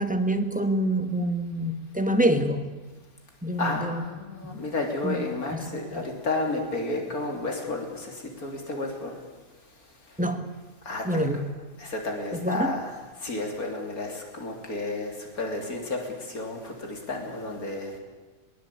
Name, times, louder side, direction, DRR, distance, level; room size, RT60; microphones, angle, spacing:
voice 1, 0.0-2.7 3.4-4.0 4.4-4.6 5.0-6.1 10.2-10.5 11.0-11.4 12.3-12.8, right 1 dB, 5° right, 7 dB, 1.6 m, -27 dB
voice 2, 3.6-9.2 10.9-11.0 11.8-12.9 13.2-18.0, left 2 dB, 85° left, 2 dB, 3.7 m, -32 dB
22.5 x 21.5 x 8.6 m, 1.2 s
omnidirectional pair, 1.5 m